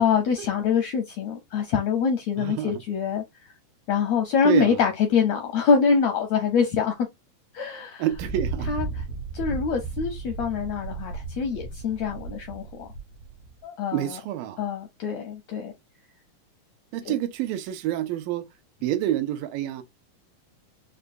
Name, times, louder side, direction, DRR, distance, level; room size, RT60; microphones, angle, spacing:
voice 1, 0.0-3.2 3.9-7.1 7.5-8.1 8.7-9.0 9.3-12.9 13.6-14.2 14.6-15.7 17.0-17.1, left 6 dB, 80° left, 1.5 m, -25 dB
voice 2, 2.4-2.7 4.4-4.8 8.0-8.7 13.9-14.6 16.9-18.5 18.8-19.8, right 12 dB, 90° right, 2.4 m, -27 dB
Thunder, 8.1-13.6, right 4 dB, 70° right, 1.6 m, -34 dB
5.8 x 2.3 x 2.5 m
omnidirectional pair, 4.0 m